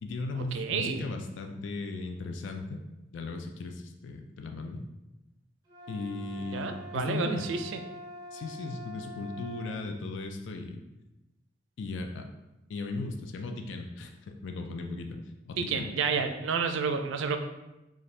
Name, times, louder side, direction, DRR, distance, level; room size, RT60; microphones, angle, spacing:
voice 1, 0.0-2.8 3.1-4.9 5.9-7.5 8.3-10.8 11.8-12.3 12.7-15.2 15.5-15.9, left 3 dB, 80° left, 4 dB, 0.4 m, -37 dB
voice 2, 0.5-1.0 6.5-7.8 15.6-17.4, right 5 dB, 90° right, 7 dB, 0.4 m, -30 dB
sound 1, 5.7-9.8, equal, 20° right, 0.8 m, -45 dB
4.1 x 2.4 x 3.2 m, 0.98 s
head